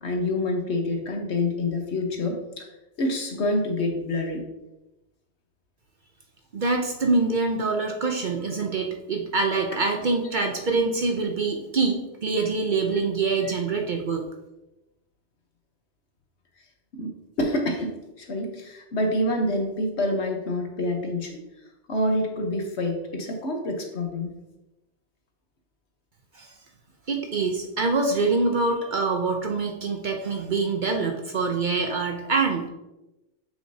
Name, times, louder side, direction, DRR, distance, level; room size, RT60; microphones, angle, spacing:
voice 1, 0.0-2.7 3.0-4.4 13.4-13.5 16.9-21.4 21.9-24.3, left 1 dB, 65° left, 3 dB, 1.3 m, -27 dB
voice 2, 6.5-14.2 26.3-26.5 27.1-32.7, right 3 dB, 50° right, 3 dB, 0.8 m, -25 dB
7.1 x 6.1 x 2.8 m, 0.98 s
omnidirectional pair, 1.2 m